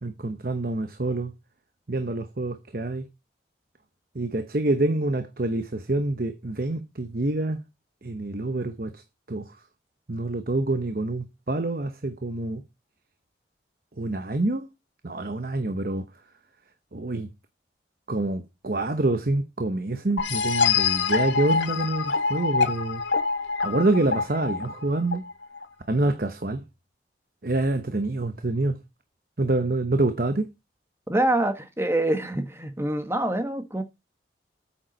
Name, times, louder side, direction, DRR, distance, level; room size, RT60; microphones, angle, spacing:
voice 1, 0.0-1.3 1.9-3.1 4.1-7.6 8.0-9.0 9.3-9.6 10.1-12.6 14.0-14.7 15.0-16.0 16.9-17.3 18.1-23.0 23.6-25.2 25.9-26.6 27.4-28.8 29.4-30.5, right 2 dB, 50° right, 0.9 m, -26 dB
sound 1, 20.2-25.7, left 5 dB, 80° left, 1.4 m, -25 dB
voice 2, 31.1-33.8, right 1 dB, 15° right, 1.2 m, -25 dB
8.9 x 7.2 x 5.2 m
head